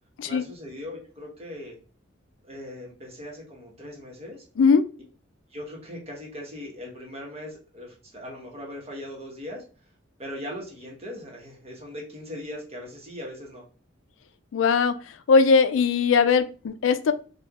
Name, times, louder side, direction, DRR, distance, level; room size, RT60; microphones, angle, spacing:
voice 1, 0.2-1.7 2.4-4.4 5.5-9.6 10.2-13.6, left 1 dB, 30° right, -1 dB, 1.1 m, -39 dB
voice 2, 14.5-14.9 15.3-17.1, left 5 dB, 80° left, 11 dB, 0.4 m, -19 dB
4.3 x 2.3 x 2.3 m, 0.38 s
head